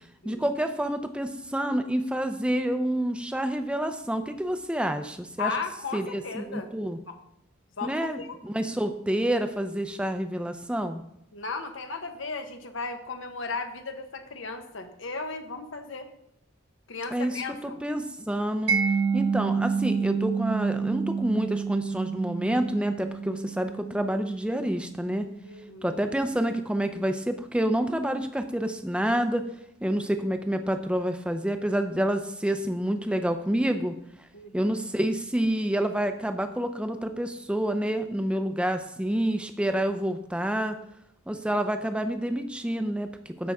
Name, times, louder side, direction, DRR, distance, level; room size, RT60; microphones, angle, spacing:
voice 1, 0.2-5.5 5.9-7.0 7.8-11.0 17.1-18.8 19.1-25.3 25.8-29.5 29.8-33.9 34.5-40.8 41.3-43.5, right 1 dB, 5° right, 7 dB, 0.6 m, -28 dB
voice 2, 5.4-6.7 7.1-7.2 7.8-8.3 11.3-16.1 16.9-17.8 25.4-26.0 34.3-34.7, left 4 dB, 70° left, 6 dB, 1.1 m, -35 dB
Mallet percussion, 18.7-25.4, right 5 dB, 55° right, 0.9 m, -29 dB
15.0 x 5.6 x 3.6 m, 0.79 s
head